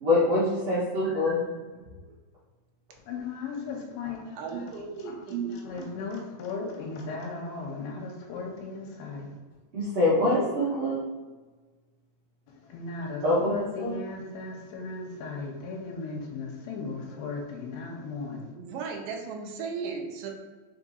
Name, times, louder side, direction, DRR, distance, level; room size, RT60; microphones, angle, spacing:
voice 1, 0.0-1.4 9.7-11.0 13.2-13.5 13.8-13.9, left 2 dB, 60° right, -11 dB, 1.5 m, -24 dB
voice 2, 1.6-1.9 4.4-5.9 6.6-6.7 10.2-10.6 18.5-20.3, right 6 dB, 80° right, 1 dB, 2.1 m, -36 dB
voice 3, 3.1-5.1 5.4-9.4 12.5-18.5, left 4 dB, 85° left, 0 dB, 2.6 m, -36 dB
5.2 x 3.8 x 2.6 m, 1.3 s
omnidirectional pair, 4.3 m